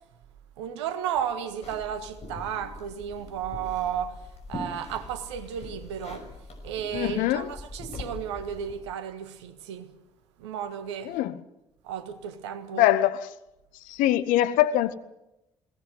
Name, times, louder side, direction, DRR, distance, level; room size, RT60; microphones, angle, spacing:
voice 1, 0.6-6.3 6.6-9.9 10.4-11.1 11.8-12.9, right 9 dB, 75° right, 1.6 m, -33 dB
sound 1, 1.6-8.8, left 2 dB, 45° left, 5.9 m, -42 dB
voice 2, 6.9-7.5 11.1-11.3 12.8-13.3 13.9-14.9, left 13 dB, 65° left, 1.0 m, -23 dB
21.5 x 17.5 x 7.8 m
figure-of-eight pair, 50°, 15 cm